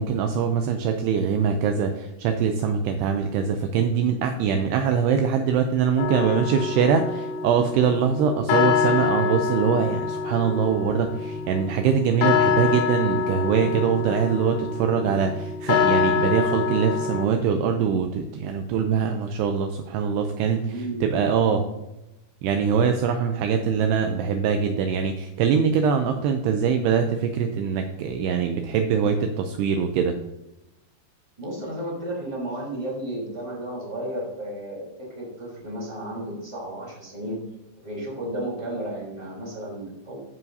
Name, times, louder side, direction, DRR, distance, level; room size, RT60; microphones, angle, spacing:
voice 1, 0.0-21.6 22.4-30.2, right 7 dB, 90° right, 5 dB, 2.3 m, -23 dB
sound 1, 6.0-17.2, left 6 dB, 80° left, 2.5 m, -26 dB
voice 2, 20.6-21.7 31.4-37.4 37.8-40.2, right 1 dB, 10° right, -4 dB, 2.5 m, -33 dB
14.0 x 5.7 x 2.7 m, 0.92 s
omnidirectional pair, 5.4 m